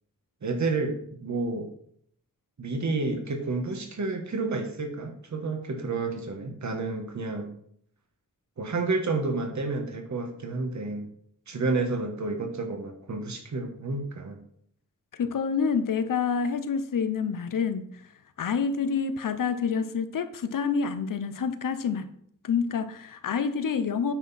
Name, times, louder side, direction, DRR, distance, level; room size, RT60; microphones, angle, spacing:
voice 1, 0.4-1.0 1.2-1.7 2.6-7.5 8.6-11.1 11.5-14.4, right 3 dB, 60° right, 1.4 m, -30 dB
voice 2, 15.1-17.9 18.4-22.1 22.4-24.1, left 6 dB, 80° left, 0.8 m, -27 dB
9.0 x 5.8 x 4.2 m
wide cardioid pair, 150°, 32 cm